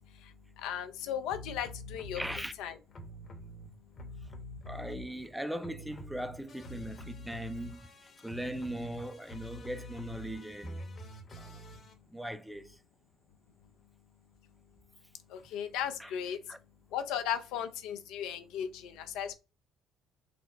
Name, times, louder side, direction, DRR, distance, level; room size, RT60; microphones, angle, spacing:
voice 1, 0.6-2.2 2.6-2.8 15.3-16.4 16.9-19.3, left 9 dB, 75° left, 0.6 m, -36 dB
sound 1, 1.3-2.4 2.9-5.3 5.6-11.9, left 1 dB, 50° left, 1.1 m, -46 dB
voice 2, 2.1-2.5 4.7-7.9 8.2-10.8 11.4-11.7 12.1-12.8 16.0-16.2 16.5-16.6, right 1 dB, 5° right, 0.6 m, -39 dB
4.1 x 2.0 x 4.0 m
hypercardioid pair, 60°, 0 cm